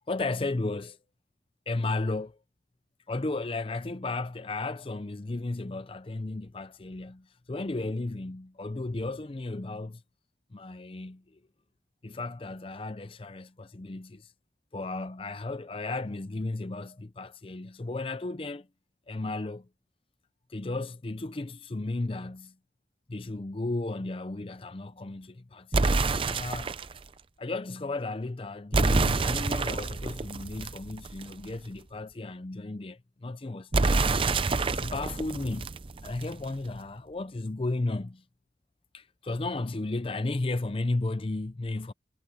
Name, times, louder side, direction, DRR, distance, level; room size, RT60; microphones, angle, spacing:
voice 1, 0.1-1.0 1.7-2.4 3.1-10.0 10.5-11.4 12.0-14.3 14.7-18.7 19.1-19.7 20.5-22.5 23.1-26.7 27.4-34.2 34.7-35.7 36.0-38.2 38.9-41.9, left 2 dB, 30° left, 0.5 m, -34 dB
sound 1, 25.7-27.0 28.7-31.5 33.7-36.5, right 3 dB, 30° right, 0.5 m, -27 dB
head